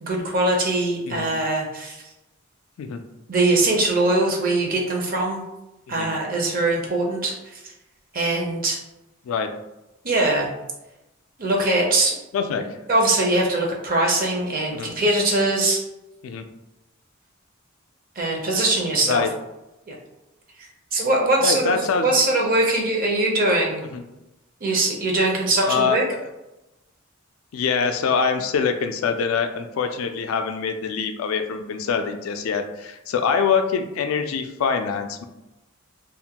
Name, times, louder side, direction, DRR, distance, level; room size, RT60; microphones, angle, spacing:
voice 1, 0.0-2.0 3.3-5.4 5.9-7.6 8.1-8.8 10.0-10.5 11.4-12.2 12.9-15.8 18.2-19.2 19.9-20.0 20.9-23.8 24.6-26.0, right 2 dB, 45° right, -1 dB, 0.6 m, -22 dB
voice 2, 12.3-12.7 14.7-14.9 16.2-16.4 19.1-19.3 21.4-22.1 23.9-24.0 25.7-26.3 27.5-35.2, left 6 dB, 75° left, 7 dB, 0.3 m, -24 dB
2.4 x 2.2 x 2.8 m, 0.97 s
head